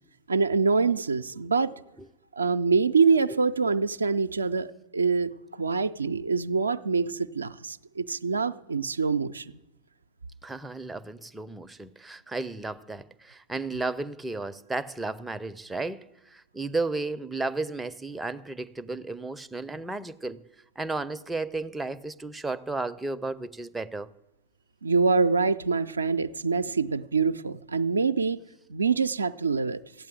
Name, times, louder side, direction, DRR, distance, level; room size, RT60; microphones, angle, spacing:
voice 1, 0.3-1.7 2.4-9.5 24.8-28.4 28.7-29.8, right 4 dB, 75° right, 0.4 m, -25 dB
voice 2, 10.4-20.4 20.8-24.1, right 3 dB, 10° right, 0.5 m, -33 dB
14.5 x 8.7 x 8.9 m
figure-of-eight pair, 90°, 0 cm